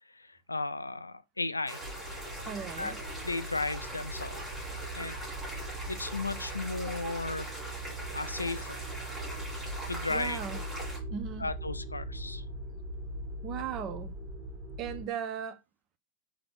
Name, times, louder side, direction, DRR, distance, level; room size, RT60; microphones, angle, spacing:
voice 1, 0.1-1.8 2.8-2.9 3.2-4.4 4.9-5.2 5.9-7.6 8.1-8.9 9.9-10.4 11.4-12.4, left 3 dB, 80° left, 0.3 m, -35 dB
sound 1, 1.6-11.0, right 1 dB, 10° right, 1.9 m, -42 dB
sound 2, 1.8-15.0, right 1 dB, 50° right, 1.2 m, -41 dB
voice 2, 2.5-3.0 10.1-10.6 11.1-11.5 13.4-14.1 14.8-15.6, right 8 dB, 35° right, 0.5 m, -37 dB
3.8 x 2.8 x 3.6 m
figure-of-eight pair, 90°, 0 cm